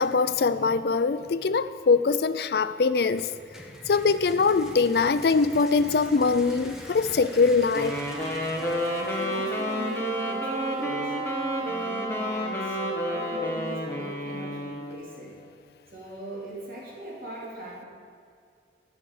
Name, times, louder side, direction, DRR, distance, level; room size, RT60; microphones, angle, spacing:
voice 1, 0.0-3.3 3.9-7.9, left 4 dB, 60° left, 13 dB, 0.4 m, -22 dB
sound 1, 3.2-10.9, equal, 5° right, 1.2 m, -44 dB
Wind instrument woodwind instrument, 7.7-15.2, equal, 15° left, 1.4 m, -31 dB
Wind instrument woodwind instrument 2, 8.5-13.6, right 2 dB, 20° right, 2.0 m, -35 dB
voice 2, 8.8-11.2 11.6-15.4 15.9-17.9, right 1 dB, 55° right, -4 dB, 3.2 m, -40 dB
11.5 x 6.9 x 8.5 m, 2.3 s
head